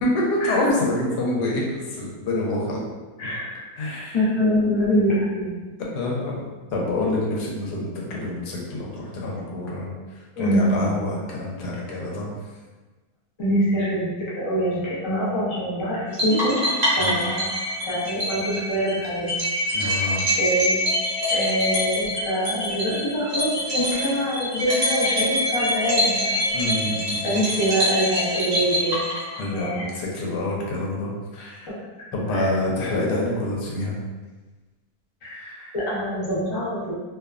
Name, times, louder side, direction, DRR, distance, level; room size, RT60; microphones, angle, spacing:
voice 1, 0.0-2.8 3.8-4.2 5.8-6.3 6.7-9.9 10.4-12.3 17.0-17.2 19.7-20.2 26.5-27.4 29.4-31.7 32.1-34.0 35.3-35.6, left 1 dB, 85° left, -3 dB, 1.2 m, -27 dB
voice 2, 3.2-5.6 10.4-10.9 13.4-14.1 14.3-16.6 16.8-17.5 17.7-19.3 19.8-20.1 20.4-20.9 21.3-26.3 27.2-29.0 29.4-29.9 32.3-32.5 35.2-36.9, equal, 50° left, -7 dB, 0.3 m, -25 dB
sound 1, 16.2-29.6, equal, 50° right, 0.5 m, -25 dB
2.8 x 2.2 x 2.3 m, 1.3 s
omnidirectional pair, 1.7 m